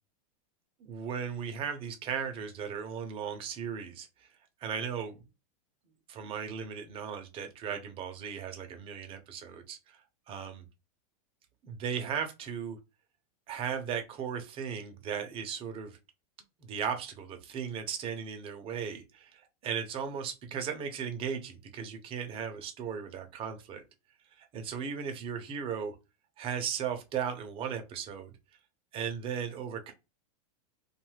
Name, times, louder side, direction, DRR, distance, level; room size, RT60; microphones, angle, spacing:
voice 1, 0.9-4.3 4.6-5.2 6.1-10.0 10.3-10.7 11.6-12.8 13.5-16.0 16.6-23.8 24.4-25.9 26.4-28.3 28.9-29.9, right 7 dB, 30° right, 0.6 m, -36 dB
2.6 x 2.3 x 3.1 m
supercardioid pair, 135°, 19 cm